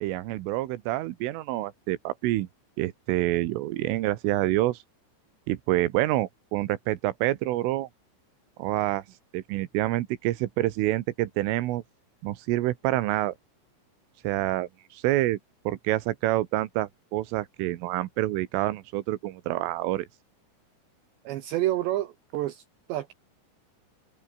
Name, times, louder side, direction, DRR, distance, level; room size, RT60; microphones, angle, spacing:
voice 1, 0.0-2.5 2.8-4.8 5.5-7.9 8.6-9.0 9.3-11.8 12.2-13.4 14.2-15.4 15.7-20.1, right 16 dB, 90° right, 3.8 m, -27 dB
voice 2, 21.2-22.6 22.9-23.1, right 14 dB, 75° right, 3.1 m, -28 dB
open air
omnidirectional pair, 5.7 m